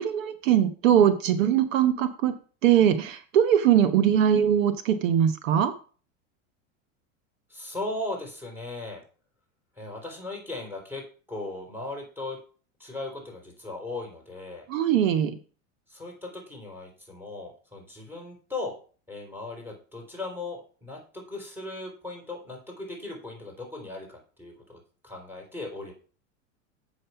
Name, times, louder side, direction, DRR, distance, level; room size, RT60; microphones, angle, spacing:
voice 1, 0.0-2.3 2.6-5.7 14.7-15.4, right 9 dB, 80° right, 10 dB, 1.1 m, -21 dB
voice 2, 7.5-9.0 9.8-11.0 11.3-12.4 12.8-14.7 15.9-18.7 19.1-25.9, left 2 dB, 5° right, 0 dB, 4.3 m, -37 dB
7.8 x 6.4 x 5.7 m, 0.39 s
supercardioid pair, 115°, 39 cm